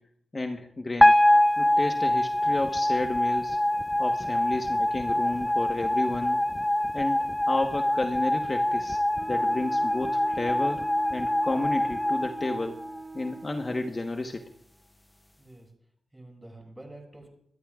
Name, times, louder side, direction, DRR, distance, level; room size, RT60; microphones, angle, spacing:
voice 1, 0.3-1.1 1.6-3.6 4.0-6.4 6.9-9.0 9.3-10.8 11.1-12.8 13.1-14.4, left 2 dB, 35° left, 4 dB, 1.2 m, -31 dB
sound 1, 1.0-13.3, left 1 dB, 10° left, 0.6 m, -25 dB
Wind instrument woodwind instrument, 9.1-14.0, right 3 dB, 40° right, 0.7 m, -43 dB
voice 2, 16.1-17.3, right 1 dB, 10° right, 1 dB, 6.6 m, -48 dB
26.5 x 12.5 x 2.4 m, 0.71 s
cardioid pair, 65°, 0 cm